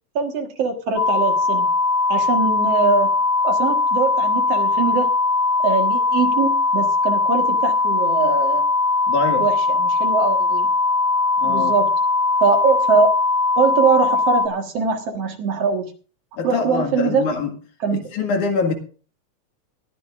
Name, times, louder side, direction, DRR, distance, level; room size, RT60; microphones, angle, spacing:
voice 1, 0.2-1.7 2.1-3.1 3.4-5.1 5.6-8.6 9.4-10.7 11.4-11.9 12.4-13.1 13.6-15.9 16.4-17.3 17.8-18.0, right 5 dB, 60° right, 2.6 m, -22 dB
sound 1, 1.0-14.5, left 3 dB, 30° left, 1.2 m, -20 dB
voice 2, 9.1-9.5 11.4-11.7 16.3-17.5 17.9-18.7, left 4 dB, 85° left, 3.4 m, -23 dB
21.0 x 14.0 x 2.5 m
omnidirectional pair, 3.4 m